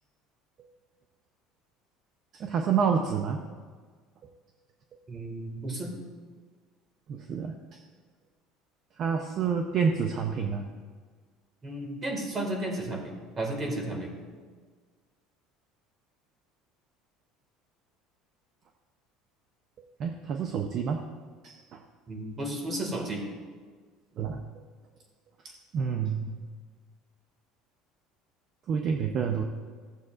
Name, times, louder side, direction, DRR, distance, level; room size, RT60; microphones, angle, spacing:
voice 1, 2.3-3.4 7.1-7.8 9.0-10.7 20.0-21.0 21.4-21.8 24.2-24.4 25.4-26.4 28.7-29.4, right 6 dB, 45° right, 4 dB, 0.7 m, -29 dB
voice 2, 5.1-6.0 11.6-14.1 22.1-23.2, right 1 dB, 25° right, 2 dB, 2.0 m, -33 dB
14.5 x 8.1 x 2.5 m, 1.6 s
cardioid pair, 130°, 0 cm